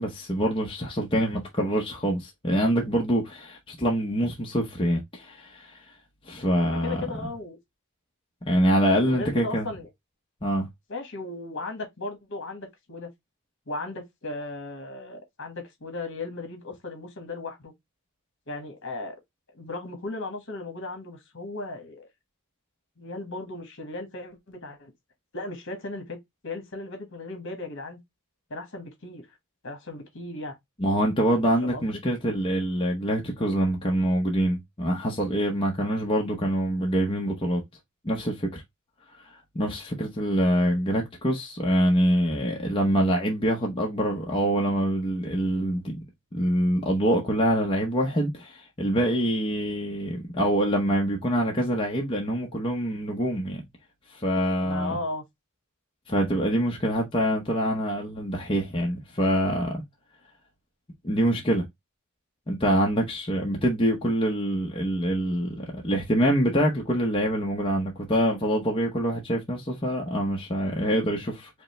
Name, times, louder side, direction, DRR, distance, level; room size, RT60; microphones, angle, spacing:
voice 1, 0.0-5.7 6.3-7.0 8.4-9.7 10.4-10.7 30.8-37.6 38.0-38.6 39.5-46.0 46.3-53.6 54.1-55.0 56.1-59.8 61.0-61.6 62.5-71.5, equal, 25° left, 0.8 m, -25 dB
voice 2, 6.7-7.6 9.0-9.9 10.9-13.1 13.7-17.7 18.5-19.2 19.5-22.1 23.0-24.9 25.3-26.2 26.4-28.0 28.5-29.3 29.6-30.6 31.6-31.8 54.6-55.2, left 2 dB, 60° left, 1.5 m, -36 dB
5.0 x 2.1 x 3.1 m
head